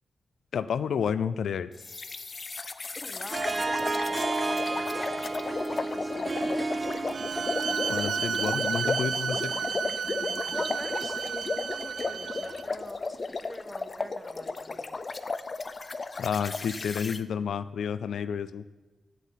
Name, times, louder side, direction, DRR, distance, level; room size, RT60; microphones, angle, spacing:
voice 1, 0.5-1.7 7.9-9.5 16.2-18.6, left 7 dB, 90° left, 13 dB, 0.4 m, -30 dB
sound 1, 1.8-17.2, left 3 dB, 35° left, 0.5 m, -34 dB
voice 2, 3.0-6.7 9.1-9.7 10.5-15.0, equal, 5° left, 6 dB, 1.1 m, -45 dB
Harp, 3.3-8.8, right 2 dB, 35° right, 0.6 m, -32 dB
Bowed string instrument, 7.1-12.6, right 7 dB, 70° right, 0.4 m, -32 dB
8.3 x 8.1 x 7.3 m, 1.2 s
wide cardioid pair, 115°, 0 cm